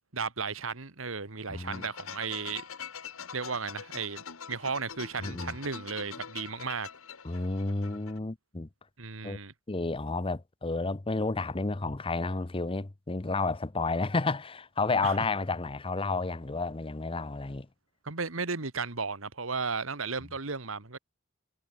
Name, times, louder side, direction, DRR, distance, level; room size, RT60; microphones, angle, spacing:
voice 1, 0.1-2.6 3.3-6.9 9.0-9.5 15.0-15.3 18.0-21.0, right 4 dB, 80° right, 2.0 m, -35 dB
voice 2, 1.5-1.8 5.2-5.5 7.2-8.7 9.2-9.4 9.7-17.7, left 3 dB, 25° left, 0.8 m, -31 dB
sound 1, 1.6-8.2, left 7 dB, 90° left, 1.5 m, -44 dB
head